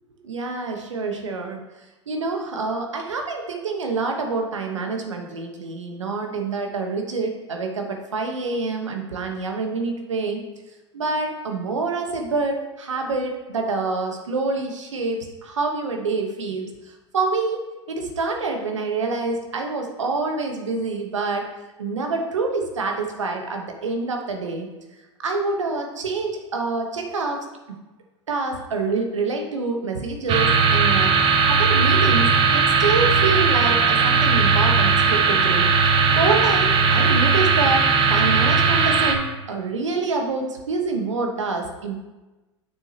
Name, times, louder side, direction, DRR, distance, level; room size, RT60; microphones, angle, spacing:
voice 1, 0.2-1.6 2.1-10.4 10.9-16.7 17.1-21.5 21.8-24.7 25.2-27.4 28.3-31.1 31.5-35.7 36.2-37.8 38.1-42.0, right 3 dB, 80° right, 3 dB, 1.2 m, -26 dB
sound 1, 30.3-39.1, right 5 dB, 35° right, 1.0 m, -18 dB
7.2 x 6.3 x 2.9 m, 1.1 s
hypercardioid pair, 95°, 15 cm